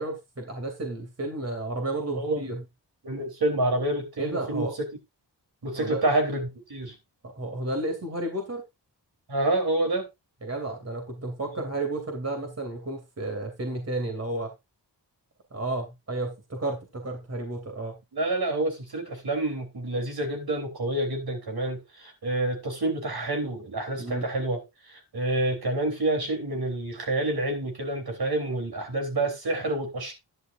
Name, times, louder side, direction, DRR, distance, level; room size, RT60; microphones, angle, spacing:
voice 1, 0.0-2.6 4.2-4.7 5.7-6.0 7.2-8.6 10.4-14.5 15.5-18.0 24.0-24.3, right 2 dB, 35° right, 2.8 m, -32 dB
voice 2, 2.1-2.5 3.0-4.7 5.6-6.9 9.3-10.1 18.1-24.6 24.9-30.1, right 2 dB, 60° right, 3.6 m, -28 dB
11.5 x 11.0 x 2.6 m
wide cardioid pair, 115°, 43 cm